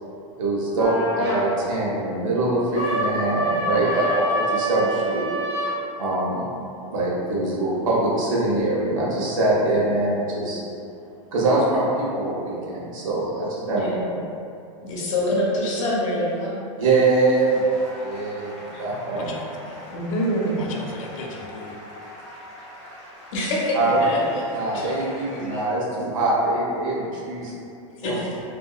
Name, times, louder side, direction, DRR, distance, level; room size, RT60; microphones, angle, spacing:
voice 1, 0.4-5.2 6.0-6.5 6.9-10.6 11.3-13.9 16.8-18.5 18.8-19.3 23.7-24.0 24.5-27.5 28.0-28.2, right 2 dB, 90° right, -6 dB, 0.9 m, -23 dB
sound 1, 0.8-1.4 2.7-5.8, equal, 45° right, 1.1 m, -26 dB
voice 2, 13.7-14.2 14.8-16.6 18.6-18.8 19.2-19.3 19.9-20.7 23.3-25.1 28.0-28.1, left 1 dB, 70° left, -5 dB, 0.8 m, -26 dB
sound 2, 16.8-25.7, equal, 5° left, 0.8 m, -42 dB
voice 3, 19.1-19.9 20.6-21.7 27.4-27.5 27.9-28.1, left 3 dB, 90° left, 0 dB, 0.5 m, -38 dB
2.9 x 2.6 x 2.4 m, 2.6 s
supercardioid pair, 130°, 17 cm